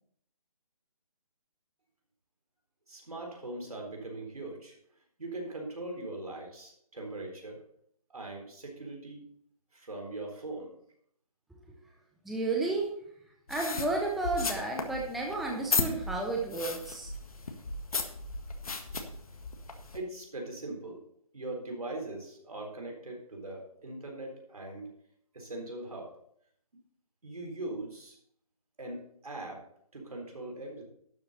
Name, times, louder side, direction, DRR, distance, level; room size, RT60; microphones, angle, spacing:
voice 1, 2.9-4.8 5.2-7.6 8.1-9.3 9.7-10.7 19.9-21.0 21.3-24.9 25.3-26.1 27.2-28.2 28.8-29.6 29.9-30.9, right 2 dB, 75° right, 2 dB, 4.0 m, -40 dB
voice 2, 12.2-12.9 13.5-17.1, right 2 dB, ahead, -1 dB, 0.6 m, -32 dB
sound 1, 13.5-20.0, left 3 dB, 70° left, 1.7 m, -35 dB
12.0 x 7.7 x 4.2 m, 0.67 s
figure-of-eight pair, 150°, 19 cm